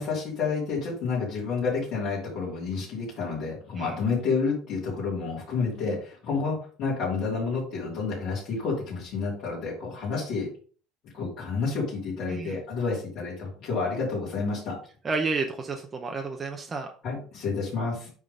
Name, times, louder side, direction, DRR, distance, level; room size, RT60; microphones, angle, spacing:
voice 1, 0.0-10.5 11.1-14.8 17.0-18.1, left 4 dB, 45° left, -6 dB, 3.1 m, -29 dB
voice 2, 12.3-12.6 15.0-16.9, right 4 dB, 15° right, 3 dB, 0.7 m, -31 dB
8.5 x 3.8 x 5.4 m, 0.42 s
cardioid pair, 170°, 0 cm